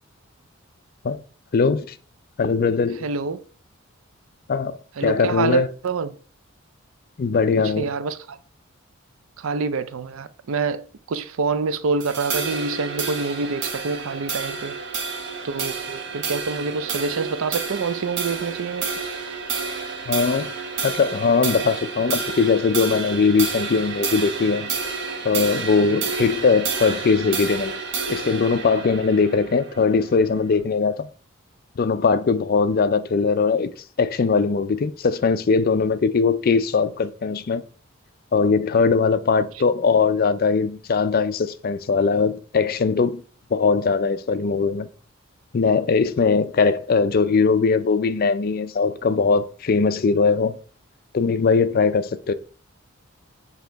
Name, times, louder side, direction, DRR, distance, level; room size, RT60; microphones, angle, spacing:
voice 1, 1.5-1.9 2.4-3.1 4.5-5.7 7.2-7.9 20.1-20.5 20.8-24.7 25.2-27.8 28.1-31.1 31.8-33.7 34.0-37.6 38.3-43.2 43.5-44.9 45.5-50.6 51.1-52.3, left 4 dB, 45° left, 0.4 m, -20 dB
voice 2, 3.0-3.4 5.0-6.2 7.6-8.4 9.4-14.8 15.4-18.9, right 4 dB, 80° right, 0.5 m, -27 dB
sound 1, 12.0-30.6, right 5 dB, 60° right, 1.0 m, -30 dB
7.3 x 2.8 x 4.5 m
head